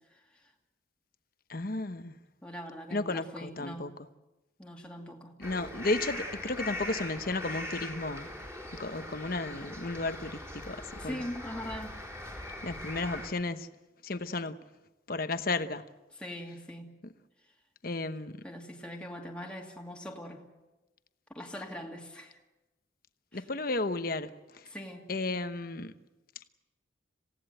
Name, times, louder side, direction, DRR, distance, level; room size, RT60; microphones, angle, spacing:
voice 1, 0.1-0.5 2.4-4.0 4.6-5.3 11.0-12.0 16.1-16.9 18.4-20.4 21.3-22.4 23.3-23.4 24.7-25.1, equal, 5° left, 2.4 m, -42 dB
voice 2, 1.5-2.2 2.9-4.1 5.4-8.3 8.7-11.2 12.6-13.7 14.0-14.6 15.1-15.8 17.8-18.4 23.3-24.7 25.1-25.9, left 2 dB, 45° left, 1.0 m, -33 dB
sound 1, 5.4-13.3, left 1 dB, 10° right, 4.0 m, -41 dB
27.0 x 17.5 x 7.9 m
head